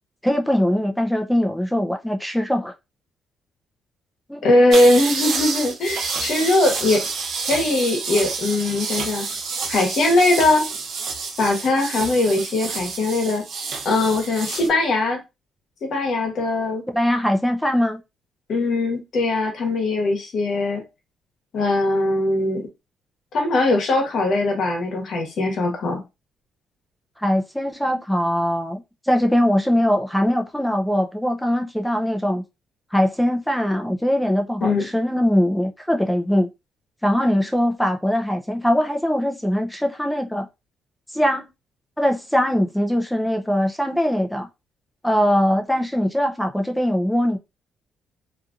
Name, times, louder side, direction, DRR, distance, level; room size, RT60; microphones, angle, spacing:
voice 1, 0.2-2.7 4.3-4.5 16.9-18.0 27.2-28.8 29.1-32.4 32.9-36.5 37.0-40.5 41.1-41.5 42.0-44.5 45.0-47.4, equal, 5° left, 0.5 m, -21 dB
voice 2, 4.4-7.0 7.5-9.3 9.7-10.6 11.4-13.4 13.8-15.2 15.8-16.8 18.5-20.8 21.5-22.6 23.3-26.0 34.6-34.9, left 2 dB, 65° left, 1.1 m, -20 dB
sound 1, 4.7-14.7, right 4 dB, 70° right, 0.8 m, -29 dB
2.8 x 2.5 x 2.5 m
cardioid pair, 90°, 0 cm